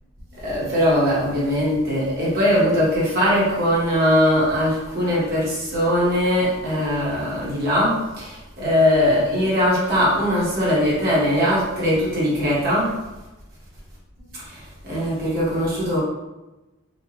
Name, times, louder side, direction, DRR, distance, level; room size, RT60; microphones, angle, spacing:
voice 1, 0.4-12.9 14.9-16.0, equal, 45° right, -8 dB, 1.5 m, -20 dB
4.5 x 2.5 x 3.1 m, 1.0 s
head